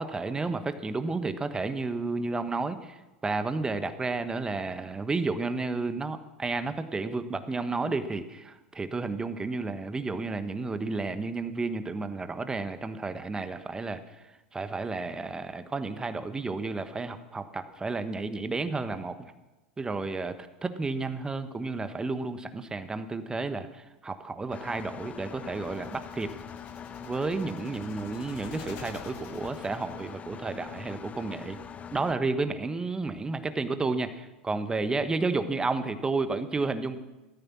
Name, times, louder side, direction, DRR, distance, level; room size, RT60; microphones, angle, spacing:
voice 1, 0.0-3.0 3.2-14.0 14.5-19.1 19.8-26.3 27.0-31.6 31.9-37.0, right 3 dB, 15° right, 10 dB, 1.3 m, -31 dB
Engine, 24.5-32.1, left 8 dB, 25° left, 0.8 m, -43 dB
sound 1, 25.5-30.1, left 8 dB, 50° left, 2.2 m, -49 dB
17.0 x 14.0 x 6.1 m, 1.1 s
figure-of-eight pair, 85°, 6 cm